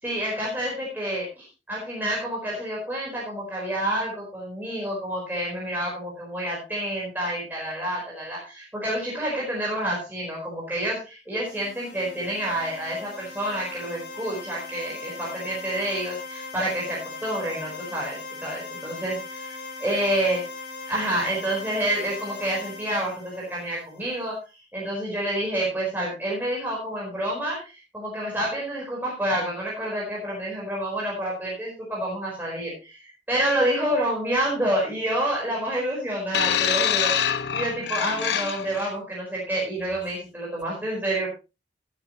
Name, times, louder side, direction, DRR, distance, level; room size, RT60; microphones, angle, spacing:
voice 1, 0.0-20.4 20.9-24.4 24.7-41.3, right 1 dB, 10° right, -4 dB, 4.5 m, -28 dB
sound 1, 11.4-24.2, left 3 dB, 85° left, 4.9 m, -39 dB
sound 2, 36.3-38.9 39.8-40.0, left 9 dB, 65° left, 0.8 m, -25 dB
12.5 x 12.5 x 3.0 m, 0.29 s
head